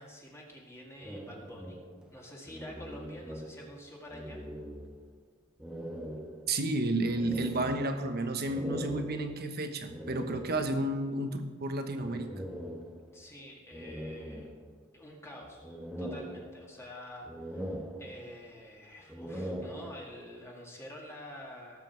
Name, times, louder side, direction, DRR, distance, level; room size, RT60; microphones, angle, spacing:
voice 1, 0.0-1.8 2.1-4.4 13.1-14.5 14.9-21.8, left 1 dB, 10° left, -2 dB, 2.0 m, -48 dB
sound 1, 1.0-3.8 4.1-5.2 5.6-11.0 12.0-13.3 13.7-15.0 15.4-16.9 17.2-18.5 19.0-20.3, equal, 5° right, 0.9 m, -42 dB
voice 2, 6.5-12.3, right 2 dB, 45° right, 7 dB, 1.2 m, -31 dB
18.5 x 7.7 x 4.6 m, 1.5 s
head